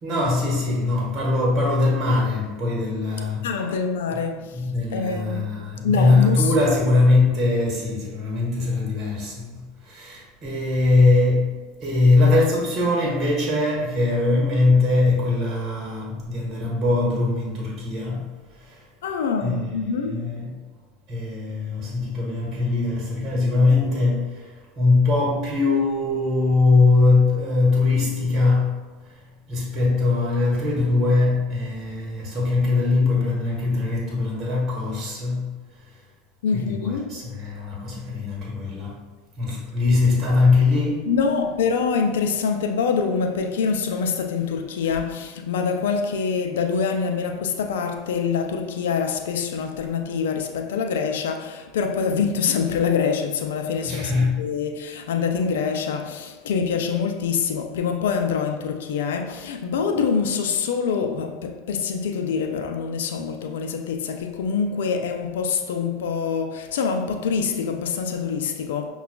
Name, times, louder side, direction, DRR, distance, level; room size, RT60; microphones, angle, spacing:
voice 1, 0.0-3.8 4.1-4.2 4.5-18.9 19.4-20.6 21.1-36.0 36.5-39.0 39.4-41.1 53.8-54.5, left 3 dB, 40° right, 1.2 m, -22 dB
voice 2, 3.4-4.6 4.9-5.5 5.8-6.5 19.0-20.3 36.4-37.1 41.1-68.9, left 6 dB, 80° left, 0.4 m, -25 dB
5.7 x 2.3 x 2.2 m
hypercardioid pair, 95°, 0 cm